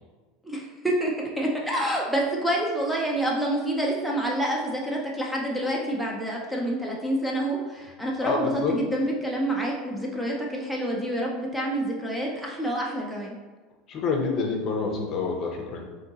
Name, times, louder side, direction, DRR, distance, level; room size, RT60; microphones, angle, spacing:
voice 1, 0.4-13.3, right 1 dB, ahead, -2 dB, 0.4 m, -28 dB
voice 2, 8.2-8.8 13.9-15.8, left 4 dB, 40° left, 2 dB, 0.6 m, -27 dB
2.6 x 2.5 x 3.8 m, 1.3 s
supercardioid pair, 130°, 0 cm